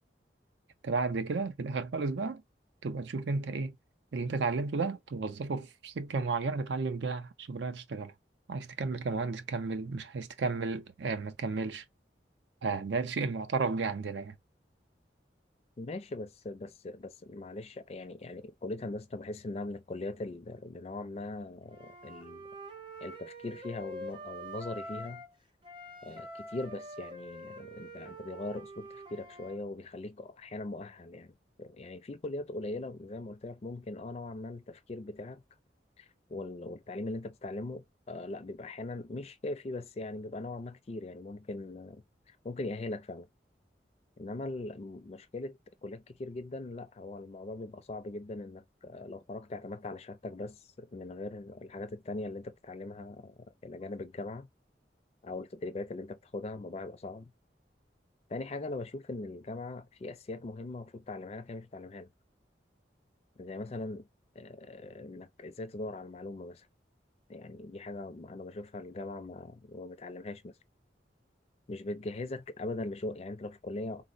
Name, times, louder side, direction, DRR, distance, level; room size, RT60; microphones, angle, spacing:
voice 1, 0.8-2.4 2.8-3.8 4.1-8.1 8.5-11.8 12.6-14.4, right 4 dB, 90° right, 0.5 m, -33 dB
voice 2, 15.8-22.4 23.0-25.2 26.0-31.3 31.6-35.4 36.0-43.3 44.2-54.5 55.2-57.3 58.3-62.1 63.4-64.1 64.4-66.7 67.3-70.5 71.7-74.0, left 2 dB, 35° left, 0.4 m, -40 dB
Wind instrument woodwind instrument, 21.7-25.3 25.6-29.6, right 1 dB, 30° right, 0.6 m, -45 dB
3.9 x 2.0 x 2.5 m
head